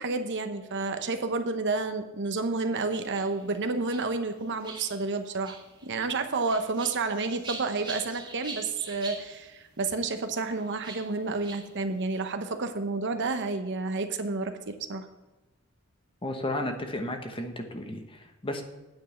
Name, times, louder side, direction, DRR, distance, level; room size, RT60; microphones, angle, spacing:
voice 1, 0.0-5.6 5.8-15.1, right 3 dB, 55° right, 8 dB, 0.9 m, -30 dB
sound 1, 2.8-12.3, right 4 dB, 20° right, 1.6 m, -45 dB
voice 2, 16.2-18.6, left 1 dB, 25° left, 5 dB, 1.1 m, -33 dB
9.3 x 5.5 x 8.0 m, 1.1 s
head